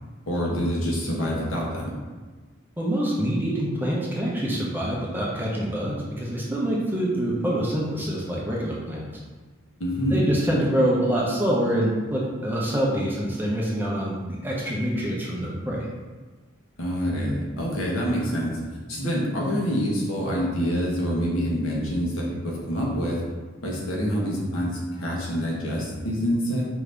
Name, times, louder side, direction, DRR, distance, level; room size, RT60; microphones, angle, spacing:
voice 1, 0.3-1.9 9.8-10.3 16.8-18.5 18.9-23.2 23.6-26.6, equal, 80° left, -3 dB, 1.0 m, -26 dB
voice 2, 2.8-9.0 10.1-15.9, right 1 dB, 10° right, -4 dB, 0.6 m, -25 dB
4.9 x 2.7 x 3.3 m, 1.4 s
head